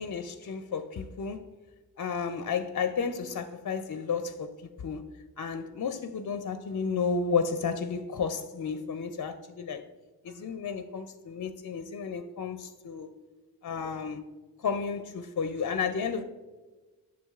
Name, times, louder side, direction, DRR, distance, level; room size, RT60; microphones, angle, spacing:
voice 1, 0.0-1.4 2.0-5.0 5.4-9.8 10.2-13.1 13.6-14.2 14.6-16.2, left 5 dB, 45° left, 9 dB, 0.4 m, -32 dB
7.0 x 6.2 x 2.4 m, 1.3 s
cardioid pair, 50°, 43 cm